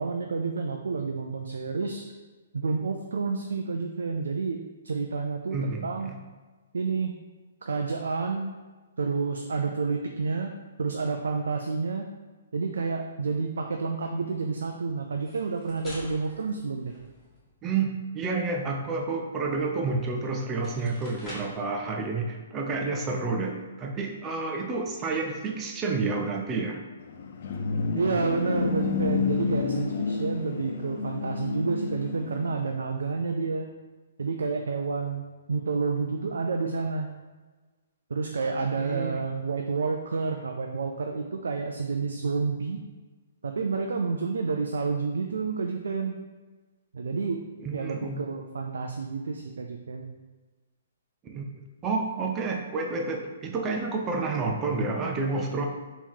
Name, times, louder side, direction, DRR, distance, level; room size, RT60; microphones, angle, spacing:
voice 1, 0.0-2.1 2.5-6.1 6.7-7.1 7.6-8.5 9.0-10.5 10.8-12.1 12.5-16.9 28.0-33.7 34.2-37.1 38.1-42.8 43.4-46.1 46.9-50.1, right 4 dB, 75° right, 3 dB, 0.4 m, -29 dB
voice 2, 5.5-6.2 17.6-26.8 38.8-39.3 47.6-48.2 51.2-51.4 51.8-55.7, right 3 dB, 20° right, 1 dB, 0.7 m, -30 dB
sound 1, 15.1-17.5 20.0-20.1 20.5-21.7, left 1 dB, 15° left, 1.5 m, -45 dB
sound 2, 27.0-32.6, left 5 dB, 55° left, 0.5 m, -30 dB
3.6 x 3.0 x 4.3 m, 1.3 s
hypercardioid pair, 130°, 0 cm